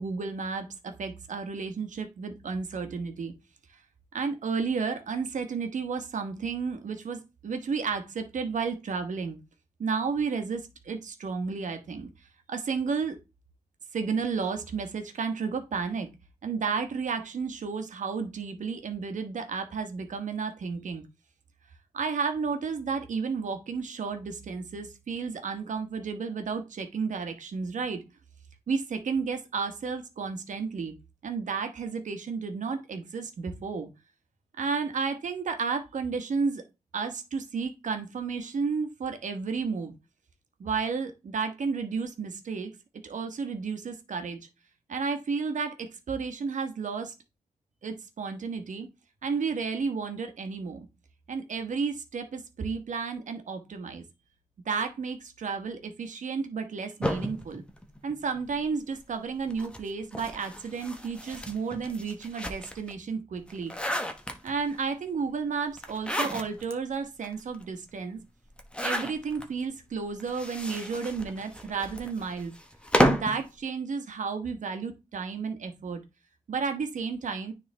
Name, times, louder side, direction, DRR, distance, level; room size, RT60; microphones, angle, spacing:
voice 1, 0.0-3.3 4.1-9.4 9.8-12.1 12.5-13.2 13.9-16.1 16.4-21.0 21.9-28.0 28.7-30.9 31.2-33.9 34.6-36.6 36.9-40.0 40.6-42.7 43.0-44.5 44.9-47.1 47.8-48.9 49.2-50.9 51.3-54.0 54.6-57.6 58.0-63.7 64.4-68.2 68.8-72.5 72.9-76.0 76.5-77.5, right 5 dB, 85° right, 7 dB, 1.2 m, -32 dB
sound 1, 57.0-58.6 59.5-62.9 63.4-64.8 65.8-66.7 67.2-67.3 67.5-67.6 68.5-69.5 70.2-73.4, equal, 10° left, 1.0 m, -31 dB
9.5 x 3.6 x 3.3 m, 0.25 s
cardioid pair, 70°, 13 cm